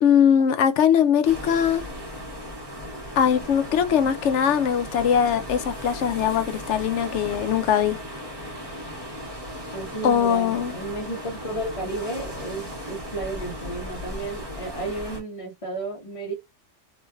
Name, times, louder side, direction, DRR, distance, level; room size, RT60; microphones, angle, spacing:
voice 1, 0.0-1.8 3.2-8.0 10.0-10.7, left 8 dB, 80° left, 0.9 m, -21 dB
sound 1, 1.2-15.2, equal, 20° right, 1.5 m, -36 dB
voice 2, 9.7-16.3, right 2 dB, 30° left, 1.3 m, -33 dB
3.2 x 3.0 x 2.3 m
omnidirectional pair, 1.2 m